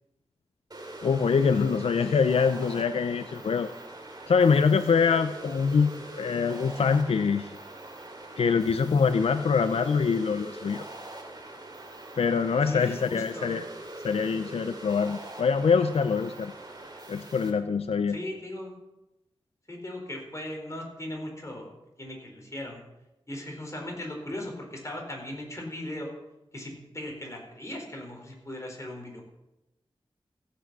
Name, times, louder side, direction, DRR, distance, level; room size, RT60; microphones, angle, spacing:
sound 1, 0.7-17.5, right 2 dB, 45° right, 2.9 m, -43 dB
voice 1, 1.0-3.7 4.3-7.5 8.4-10.9 12.2-13.6 14.0-16.5 17.1-18.2, left 5 dB, 85° left, 10 dB, 0.5 m, -24 dB
voice 2, 12.6-13.6 18.1-18.7 19.7-21.7 22.0-22.8 23.3-26.1 26.5-29.2, left 1 dB, 30° left, 1 dB, 4.3 m, -38 dB
15.0 x 8.2 x 6.1 m, 0.95 s
wide cardioid pair, 70°, 10 cm